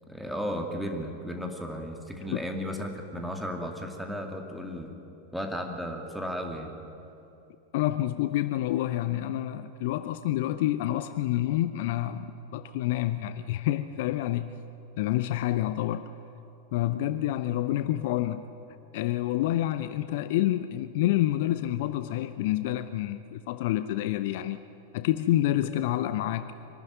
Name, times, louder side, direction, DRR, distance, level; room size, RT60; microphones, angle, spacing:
voice 1, 0.1-4.9 5.3-6.8, equal, ahead, 2 dB, 2.4 m, -34 dB
voice 2, 7.7-14.5 15.0-16.1 16.7-18.4 18.9-24.6 24.9-26.5, left 14 dB, 50° left, 12 dB, 0.6 m, -28 dB
24.0 x 12.0 x 9.6 m, 2.9 s
figure-of-eight pair, 90°, 0 cm